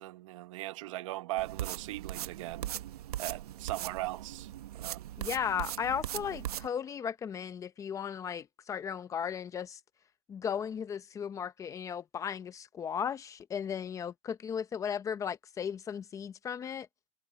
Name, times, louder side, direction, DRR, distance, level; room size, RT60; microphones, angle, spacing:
voice 1, 0.0-2.7 3.2-4.5 4.8-5.1, right 18 dB, 55° right, 1.1 m, -39 dB
sound 1, 1.4-6.7, right 13 dB, 80° right, 1.3 m, -39 dB
voice 2, 5.2-9.8 10.3-16.9, left 7 dB, 15° left, 0.9 m, -36 dB
supercardioid pair, 150°, 19 cm